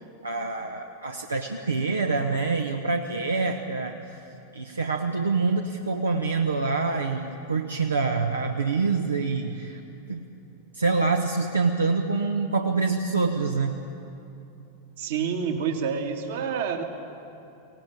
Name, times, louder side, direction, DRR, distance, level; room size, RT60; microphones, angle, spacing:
voice 1, 0.2-4.0 4.5-9.8 10.1-10.2 10.7-13.8, right 4 dB, 75° right, 3 dB, 1.1 m, -26 dB
voice 2, 15.0-16.8, right 6 dB, 55° right, 3 dB, 2.2 m, -28 dB
24.0 x 18.0 x 8.7 m, 2.8 s
figure-of-eight pair, 90°, 0 cm